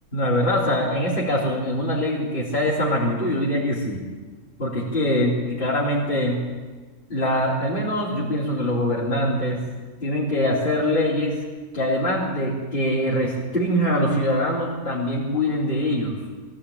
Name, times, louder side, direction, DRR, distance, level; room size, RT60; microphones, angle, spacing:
voice 1, 0.1-4.0 4.6-6.4 7.1-9.6 10.0-11.4 11.7-16.2, left 1 dB, 35° left, -7 dB, 4.0 m, -23 dB
24.0 x 15.5 x 8.7 m, 1.4 s
omnidirectional pair, 1.5 m